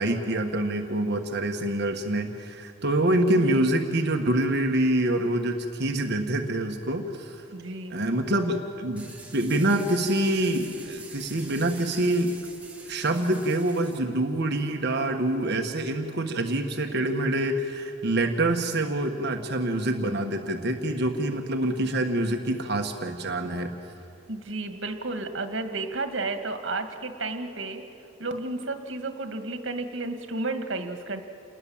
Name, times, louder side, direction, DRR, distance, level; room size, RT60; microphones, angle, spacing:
voice 1, 0.0-7.5 7.9-12.4 12.9-23.7, right 1 dB, 60° right, 3 dB, 1.5 m, -26 dB
voice 2, 7.5-8.0 24.3-27.8 28.2-31.2, right 2 dB, 75° right, 7 dB, 2.0 m, -32 dB
sound 1, 9.0-14.0, right 3 dB, 10° right, 2.6 m, -45 dB
28.5 x 20.0 x 7.3 m, 2.5 s
head